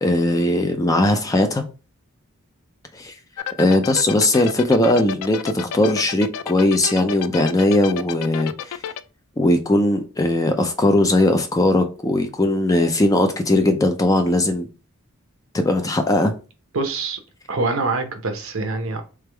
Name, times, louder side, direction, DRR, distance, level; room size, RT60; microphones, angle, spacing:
voice 1, 0.0-1.6 2.9-3.1 3.6-8.8 9.4-14.7 15.5-16.3, left 1 dB, 15° left, 0.4 m, -19 dB
sound 1, 3.4-9.0, left 8 dB, 85° left, 0.3 m, -29 dB
voice 2, 16.7-17.2 17.5-19.0, right 3 dB, 60° right, 0.8 m, -24 dB
3.4 x 3.4 x 3.3 m
head